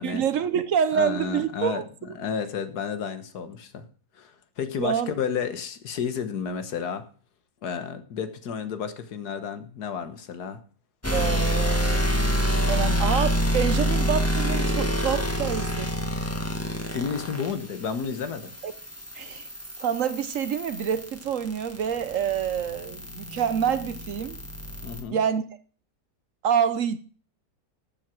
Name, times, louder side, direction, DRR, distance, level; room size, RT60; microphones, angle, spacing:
voice 1, 0.0-2.1 4.8-5.1 11.1-12.2 12.7-15.9 18.6-18.7 19.1-19.5 19.8-24.4 25.1-25.4 26.4-27.0, right 8 dB, 60° right, 1.0 m, -27 dB
voice 2, 0.9-3.8 4.2-7.0 7.6-10.6 12.8-13.0 16.9-18.5 24.8-25.2, left 6 dB, 80° left, 1.7 m, -31 dB
sound 1, 11.0-25.0, equal, 10° left, 1.6 m, -27 dB
12.0 x 7.6 x 6.1 m
omnidirectional pair, 1.7 m